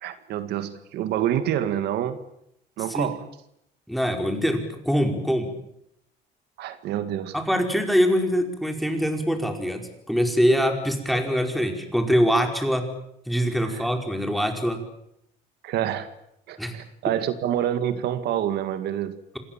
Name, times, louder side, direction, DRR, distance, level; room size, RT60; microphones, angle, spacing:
voice 1, 0.0-2.2 2.8-3.2 6.6-7.4 13.6-13.9 15.6-16.1 16.5-19.2, right 11 dB, 75° right, 10 dB, 1.9 m, -27 dB
voice 2, 3.9-5.5 7.3-12.8 13.3-14.8 16.6-16.7, equal, ahead, 4 dB, 4.8 m, -23 dB
27.0 x 20.5 x 7.4 m, 0.77 s
cardioid pair, 110°, 17 cm